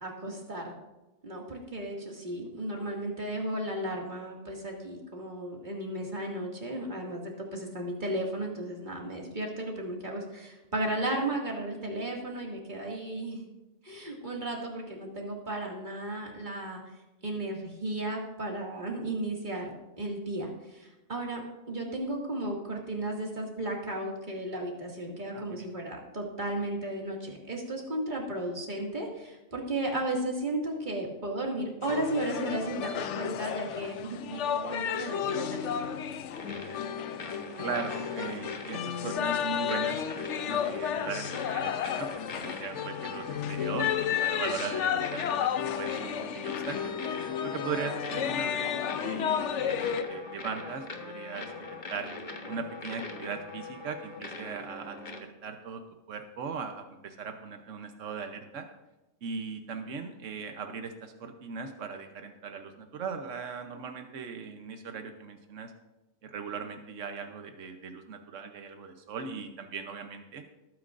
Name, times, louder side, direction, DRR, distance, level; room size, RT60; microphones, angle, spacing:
voice 1, 0.0-0.7 1.2-13.5 13.8-16.8 17.2-19.7 20.0-21.4 21.7-35.9, right 1 dB, 40° right, -1 dB, 2.4 m, -34 dB
voice 2, 25.3-25.7 37.6-47.0 47.4-48.7 49.0-52.1 52.5-55.8 56.1-58.7 59.2-65.7 66.2-70.4, right 5 dB, 85° right, 6 dB, 1.3 m, -39 dB
sound 1, 31.8-50.0, left 9 dB, 75° left, 0.9 m, -32 dB
sound 2, 36.3-55.2, left 3 dB, 40° left, 1.3 m, -42 dB
20.0 x 9.3 x 2.6 m, 1.0 s
omnidirectional pair, 1.3 m